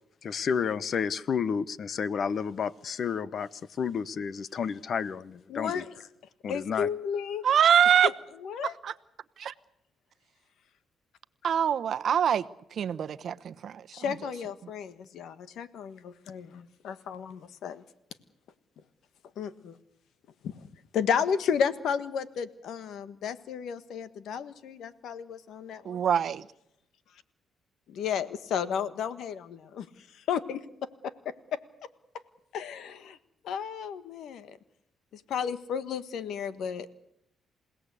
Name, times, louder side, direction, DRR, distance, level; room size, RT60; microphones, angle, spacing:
voice 1, 0.2-3.5 3.8-5.8 6.4-6.9, left 6 dB, 55° left, 1.0 m, -31 dB
voice 2, 5.5-6.1 6.5-7.5 8.0-8.7 13.9-17.8 19.4-19.8 20.4-26.0 27.9-30.6 31.0-31.6 32.5-33.2 33.4-34.6 35.1-36.9, left 7 dB, 75° left, 1.5 m, -33 dB
voice 3, 7.4-8.1 8.8-8.9 9.4-9.5 11.4-12.4 12.8-13.8 25.8-26.4, right 8 dB, 60° right, 0.9 m, -24 dB
28.0 x 17.5 x 8.4 m
cardioid pair, 90°, 0 cm